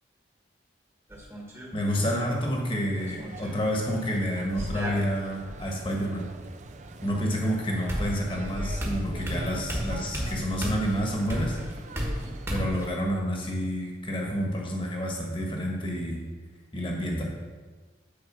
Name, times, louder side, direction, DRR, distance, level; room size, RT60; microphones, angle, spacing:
sound 1, 1.1-1.7 3.0-3.6 4.6-5.6 7.3-7.4 7.9-12.9, equal, 15° right, 1.3 m, -33 dB
voice 1, 1.7-6.2 7.0-11.6 12.5-16.2 16.7-17.2, equal, 25° left, -1 dB, 1.4 m, -29 dB
sound 2, 3.0-12.5, right 2 dB, 40° right, 0.5 m, -45 dB
8.9 x 4.7 x 6.1 m, 1.4 s
head